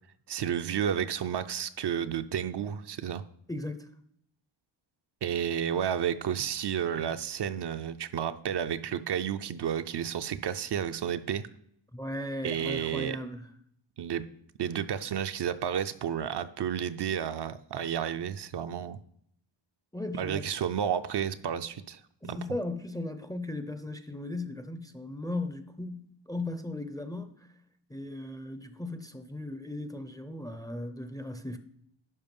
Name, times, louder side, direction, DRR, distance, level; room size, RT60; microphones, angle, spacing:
voice 1, 0.3-3.2 5.2-11.5 12.4-13.2 14.0-14.2 14.6-19.0 20.1-22.4, right 9 dB, 55° right, 0.5 m, -31 dB
voice 2, 3.5-3.9 11.9-13.5 19.9-20.5 22.2-27.5 27.9-31.6, left 2 dB, 10° left, 0.5 m, -37 dB
11.0 x 4.7 x 5.3 m
wide cardioid pair, 140°, 49 cm